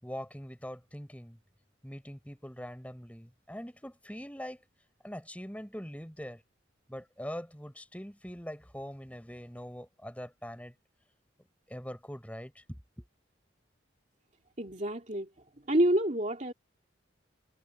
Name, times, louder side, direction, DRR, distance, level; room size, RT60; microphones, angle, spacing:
voice 1, 0.0-1.4 1.8-4.6 5.0-6.4 6.9-10.7 11.7-13.0, equal, 5° left, 6.6 m, -43 dB
voice 2, 14.6-15.3 15.7-16.5, right 1 dB, 40° right, 2.7 m, -27 dB
head